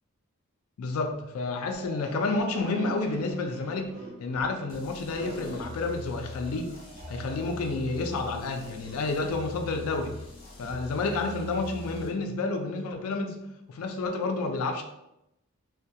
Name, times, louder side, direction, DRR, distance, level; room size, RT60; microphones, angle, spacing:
voice 1, 0.8-6.7 7.1-10.1 10.6-13.4 13.7-14.8, left 3 dB, 80° left, 5 dB, 0.4 m, -30 dB
sound 1, 1.6-7.6, right 1 dB, 30° right, 0.5 m, -45 dB
sound 2, 4.7-12.1, left 2 dB, 40° left, 0.7 m, -43 dB
2.2 x 2.1 x 2.7 m, 0.87 s
head